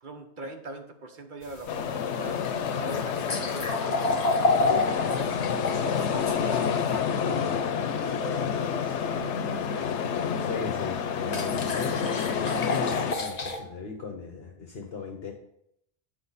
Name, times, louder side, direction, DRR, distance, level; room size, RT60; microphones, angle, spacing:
voice 1, 0.0-2.4 2.8-4.0 4.3-5.4 5.8-9.9, right 2 dB, 45° right, 6 dB, 1.1 m, -42 dB
sound 1, 1.4-7.0 10.1-10.2 11.3-13.6, left 2 dB, 40° left, 1.0 m, -29 dB
sound 2, 1.7-13.1, left 7 dB, 90° left, 1.0 m, -29 dB
voice 2, 10.4-15.3, left 5 dB, 65° left, 2 dB, 1.2 m, -36 dB
10.5 x 6.0 x 4.1 m, 0.75 s
omnidirectional pair, 1.1 m